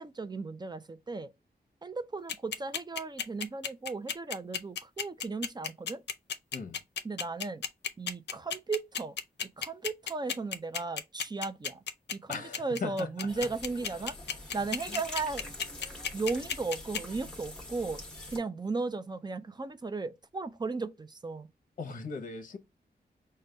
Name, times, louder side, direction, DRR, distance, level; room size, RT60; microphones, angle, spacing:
voice 1, 0.0-1.3 1.8-6.0 7.0-7.6 8.0-9.2 9.6-11.8 12.1-14.1 14.5-15.5 16.1-18.0 18.3-21.5, right 3 dB, 25° right, 0.4 m, -36 dB
sound 1, 2.3-17.0, left 7 dB, 80° left, 0.5 m, -33 dB
voice 2, 12.3-13.5 14.9-15.0 21.8-22.6, left 4 dB, 50° left, 0.8 m, -39 dB
sound 2, 13.3-18.4, left 1 dB, 5° left, 1.3 m, -45 dB
5.0 x 2.2 x 3.3 m
wide cardioid pair, 80°, 18 cm